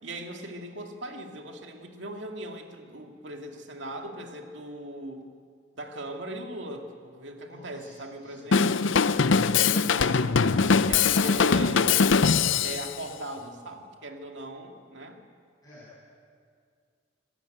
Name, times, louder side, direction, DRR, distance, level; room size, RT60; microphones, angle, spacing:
voice 1, 0.0-5.3 5.7-8.9 9.6-11.9 12.6-15.2, right 1 dB, 65° right, 3 dB, 2.4 m, -39 dB
voice 2, 7.5-8.5 15.6-16.0, left 1 dB, 20° left, -9 dB, 8.0 m, -52 dB
Drum kit / Drum, 8.5-12.9, left 5 dB, 70° left, 0.6 m, -22 dB
26.5 x 16.0 x 9.3 m, 2.2 s
head